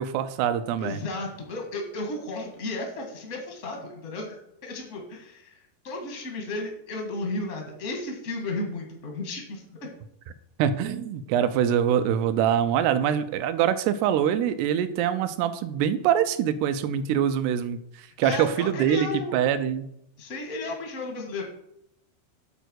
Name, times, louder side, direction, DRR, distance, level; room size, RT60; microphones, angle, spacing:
voice 1, 0.0-1.0 10.6-19.9, right 9 dB, 85° right, 12 dB, 2.7 m, -24 dB
voice 2, 0.8-4.4 4.6-5.6 5.8-9.6 18.2-19.4 20.2-21.4, left 2 dB, 60° left, 1 dB, 0.7 m, -33 dB
9.2 x 4.4 x 6.3 m, 0.76 s
omnidirectional pair, 4.6 m